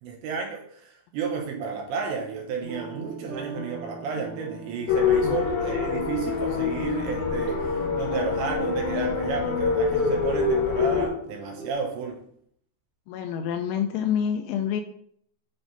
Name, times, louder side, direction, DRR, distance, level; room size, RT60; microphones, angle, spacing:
voice 1, 0.0-12.2, right 5 dB, 75° right, 1 dB, 2.9 m, -32 dB
sound 1, 2.6-11.7, right 2 dB, 45° right, 1.9 m, -40 dB
sound 2, 4.9-11.1, left 5 dB, 70° left, 2.3 m, -25 dB
voice 2, 13.1-14.8, left 8 dB, 85° left, 5 dB, 2.8 m, -27 dB
10.0 x 3.6 x 3.9 m, 0.66 s
omnidirectional pair, 5.8 m